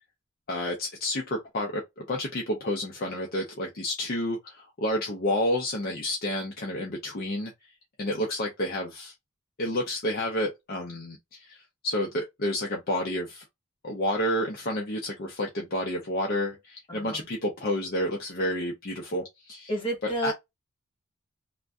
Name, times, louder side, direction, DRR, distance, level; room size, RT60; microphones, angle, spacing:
voice 1, 0.5-7.5 8.0-9.1 9.6-13.4 13.8-19.7 20.2-20.3, left 1 dB, 45° left, 0.6 m, -30 dB
voice 2, 16.9-17.3 19.7-20.3, right 1 dB, 25° left, 1.2 m, -30 dB
2.5 x 2.2 x 3.4 m
head